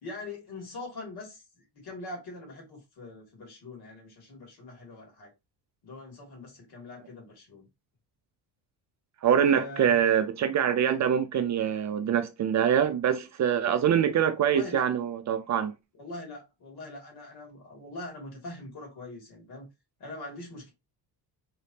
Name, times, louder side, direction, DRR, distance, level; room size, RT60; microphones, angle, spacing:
voice 1, 0.0-5.3 5.8-7.7 9.3-10.0 13.8-14.0 14.4-14.8 15.9-19.7 20.0-20.7, left 2 dB, 60° left, 2.5 m, -42 dB
voice 2, 9.2-15.7, right 8 dB, 40° right, 0.4 m, -24 dB
3.9 x 3.4 x 2.8 m
cardioid pair, 145°, 43 cm